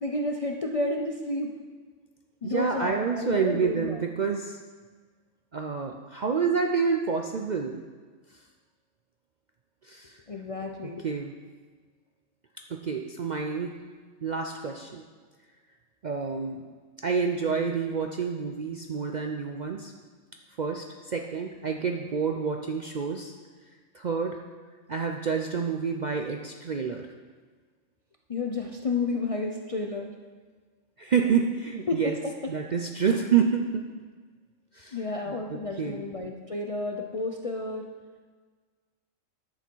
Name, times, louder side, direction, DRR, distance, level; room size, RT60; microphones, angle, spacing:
voice 1, 0.0-1.5 2.4-4.0 10.3-11.0 28.3-30.1 31.9-32.2 34.9-37.9, left 2 dB, 45° left, 1 dB, 0.4 m, -31 dB
voice 2, 2.4-4.6 5.5-7.8 9.8-10.2 11.0-11.3 12.7-13.9 14.2-15.0 16.0-16.6 17.0-19.9 20.6-23.3 23.9-24.4 24.9-27.1 31.0-32.2 32.5-33.9 34.7-36.1, right 6 dB, 55° right, 3 dB, 0.5 m, -28 dB
10.5 x 8.3 x 4.6 m, 1.5 s
omnidirectional pair, 1.4 m